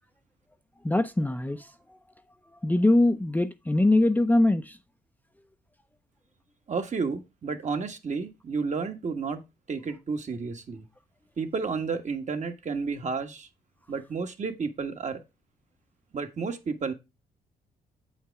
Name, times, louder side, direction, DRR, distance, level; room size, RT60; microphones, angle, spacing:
voice 1, 0.8-1.7 2.6-4.8, left 2 dB, 10° left, 0.7 m, -22 dB
voice 2, 6.7-10.8 11.4-13.5 13.9-15.2 16.1-16.9, right 4 dB, 45° right, 1.5 m, -31 dB
8.0 x 4.9 x 4.6 m
supercardioid pair, 60°, 17 cm